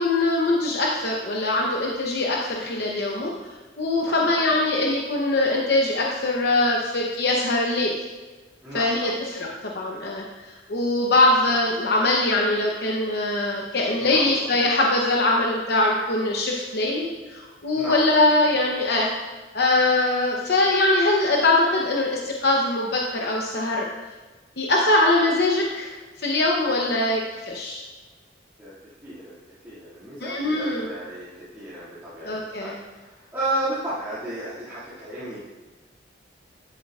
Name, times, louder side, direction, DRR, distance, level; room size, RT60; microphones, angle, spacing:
voice 1, 0.0-3.3 3.8-8.0 8.7-19.1 19.5-23.9 24.6-25.9 26.2-27.8 30.2-30.9 32.2-32.8, left 2 dB, 60° left, -1 dB, 0.8 m, -22 dB
voice 2, 4.0-4.4 8.6-9.1 14.0-14.4 17.7-17.9 28.6-28.7 29.0-29.4 29.6-31.3 31.5-32.3 32.6-32.7 33.3-35.4, right 1 dB, 10° right, -14 dB, 2.2 m, -32 dB
11.0 x 8.3 x 2.4 m, 1.3 s
head